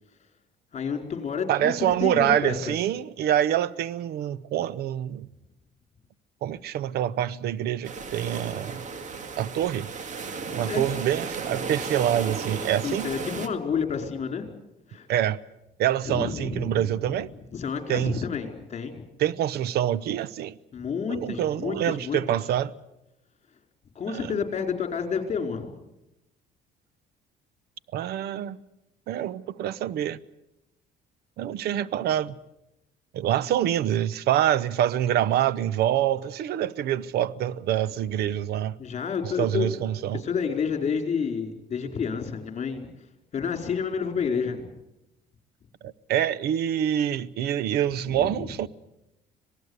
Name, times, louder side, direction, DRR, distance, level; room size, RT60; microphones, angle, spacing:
voice 1, 0.7-2.6 10.7-10.8 12.8-14.5 14.9-15.1 16.1-16.9 17.5-18.9 20.7-22.2 23.9-25.7 38.8-39.8 40.1-42.9 43.3-44.7 48.2-48.4, left 6 dB, 40° left, 4.6 m, -30 dB
voice 2, 1.5-5.3 6.4-8.8 9.4-9.9 10.5-13.1 15.1-15.4 15.8-17.3 17.9-18.2 19.2-20.6 21.1-22.7 24.1-24.3 27.9-28.6 29.1-30.2 31.4-32.3 33.1-38.8 39.4-40.2 45.8-48.7, right 11 dB, 70° right, 0.9 m, -26 dB
sound 1, 7.8-13.5, right 4 dB, 45° right, 2.1 m, -34 dB
26.5 x 18.5 x 8.1 m
cardioid pair, 110°, 17 cm